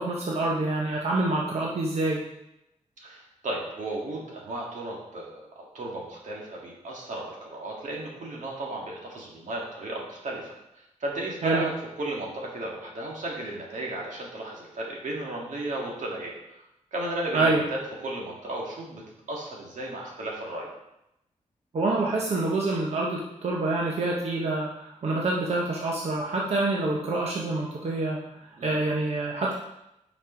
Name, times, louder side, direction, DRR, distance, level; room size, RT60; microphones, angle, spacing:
voice 1, 0.0-2.2 11.4-11.6 17.3-17.6 21.7-29.5, right 2 dB, 55° right, -2 dB, 0.9 m, -27 dB
voice 2, 3.0-10.5 11.0-11.7 12.0-16.7 16.9-19.0 19.3-20.7 28.6-28.9, right 2 dB, 75° right, -2 dB, 1.9 m, -34 dB
5.7 x 5.3 x 5.1 m, 0.86 s
wide cardioid pair, 150°, 13 cm